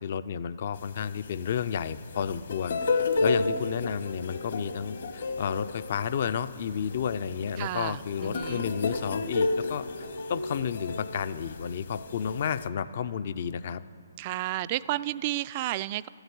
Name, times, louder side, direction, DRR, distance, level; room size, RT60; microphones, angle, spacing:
voice 1, 0.0-9.9 10.3-13.8, left 7 dB, 50° left, 13 dB, 0.4 m, -31 dB
sound 1, 0.8-12.7, left 3 dB, 65° left, 1.4 m, -33 dB
voice 2, 7.6-8.6 14.2-16.1, right 15 dB, 35° right, 17 dB, 0.3 m, -32 dB
12.5 x 8.0 x 8.5 m, 2.7 s
hypercardioid pair, 145°, 0 cm